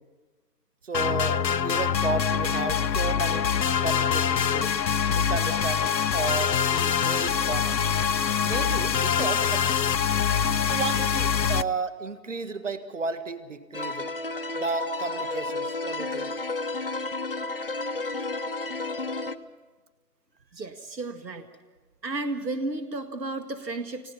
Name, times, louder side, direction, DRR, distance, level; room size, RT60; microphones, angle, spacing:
voice 1, 0.8-3.5 3.8-4.8 5.1-7.8 8.4-9.6 10.7-14.1 14.5-16.3, right 4 dB, 50° right, 11 dB, 1.7 m, -33 dB
sound 1, 0.9-11.6, left 7 dB, 90° left, 0.8 m, -24 dB
sound 2, 13.7-19.4, left 2 dB, 35° left, 0.7 m, -32 dB
voice 2, 20.5-21.4 22.0-24.1, right 2 dB, 85° right, 7 dB, 1.9 m, -33 dB
30.0 x 16.5 x 5.6 m, 1.3 s
figure-of-eight pair, 165°, 49 cm